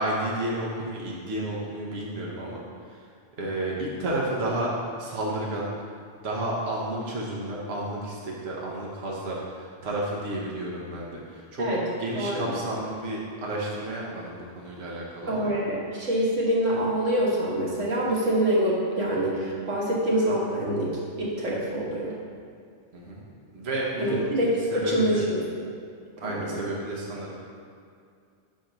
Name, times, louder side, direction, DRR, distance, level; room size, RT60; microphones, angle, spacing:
voice 1, 0.0-3.0 3.4-5.7 6.2-11.7 12.0-15.5 22.9-23.2 23.5-24.4 24.7-25.2 26.2-27.4, right 1 dB, 60° right, -4 dB, 1.2 m, -31 dB
voice 2, 12.2-12.5 15.3-22.1 24.0-24.5 24.7-25.7 26.2-26.7, right 1 dB, 85° right, -5 dB, 1.7 m, -26 dB
5.2 x 5.1 x 5.9 m, 2.3 s
omnidirectional pair, 1.3 m